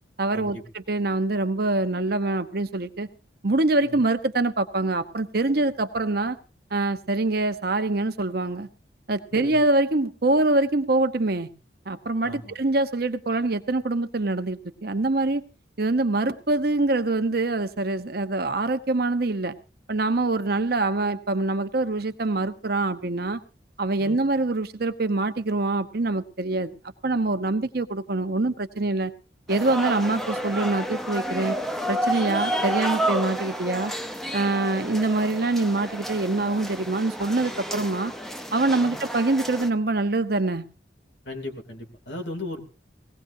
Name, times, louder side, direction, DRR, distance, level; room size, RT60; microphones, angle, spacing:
voice 1, 0.2-3.1 3.4-6.4 6.7-8.7 9.1-11.5 11.9-15.4 15.8-19.6 19.9-23.4 23.8-26.7 27.0-29.1 29.5-31.6 31.9-33.9 34.3-38.1 38.5-40.6, right 2 dB, 55° right, 1.0 m, -24 dB
voice 2, 12.2-12.6 24.0-24.2 38.9-39.0 41.2-42.7, left 2 dB, 80° left, 2.9 m, -36 dB
sound 1, 29.5-39.7, right 1 dB, ahead, 0.7 m, -30 dB
19.5 x 17.0 x 2.7 m
head